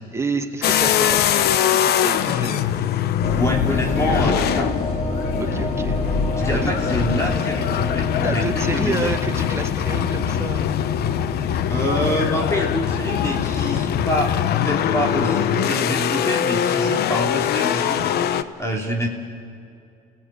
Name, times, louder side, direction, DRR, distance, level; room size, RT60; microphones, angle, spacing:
voice 1, 0.1-2.6 5.4-6.0 6.5-6.7 8.2-10.8, right 3 dB, 15° right, 4 dB, 2.0 m, -29 dB
sound 1, 0.6-18.4, left 10 dB, 70° left, 1.0 m, -22 dB
sound 2, 3.2-15.3, left 2 dB, 45° left, 3.1 m, -28 dB
voice 2, 3.4-4.8 6.4-9.1 11.7-14.3 14.6-18.1 18.6-19.1, equal, 15° left, 0 dB, 3.0 m, -26 dB
28.5 x 18.0 x 8.8 m, 2.5 s
cardioid pair, 110°, 17 cm